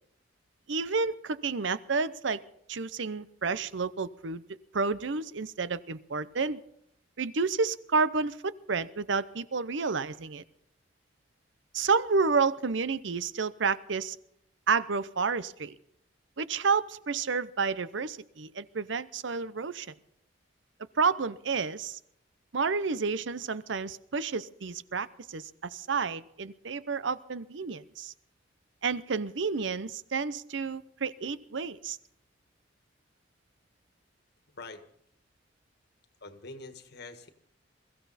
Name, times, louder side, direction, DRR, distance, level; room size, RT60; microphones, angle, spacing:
voice 1, 0.7-2.4 2.7-4.4 4.7-6.6 7.2-10.4 11.7-14.2 14.7-15.7 16.4-19.9 21.0-22.0 22.5-28.1 28.8-32.0, right 4 dB, 75° right, 15 dB, 0.7 m, -30 dB
voice 2, 34.5-34.9 36.2-37.3, left 3 dB, 60° left, 8 dB, 1.6 m, -45 dB
22.5 x 15.0 x 4.2 m, 0.72 s
head